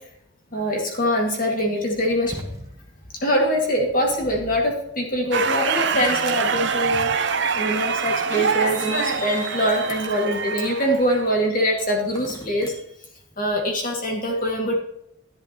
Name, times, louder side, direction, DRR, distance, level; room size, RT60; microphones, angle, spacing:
voice 1, 0.5-2.3 3.2-12.7 13.4-14.7, equal, 45° left, 0 dB, 2.2 m, -23 dB
sound 1, 2.2-3.3, equal, 15° right, 1.2 m, -37 dB
sound 2, 5.3-11.5, right 5 dB, 65° right, 0.7 m, -25 dB
sound 3, 5.4-6.4 8.6-10.2 11.7-12.8, left 1 dB, 20° left, 1.3 m, -42 dB
11.0 x 11.0 x 3.1 m, 0.77 s
head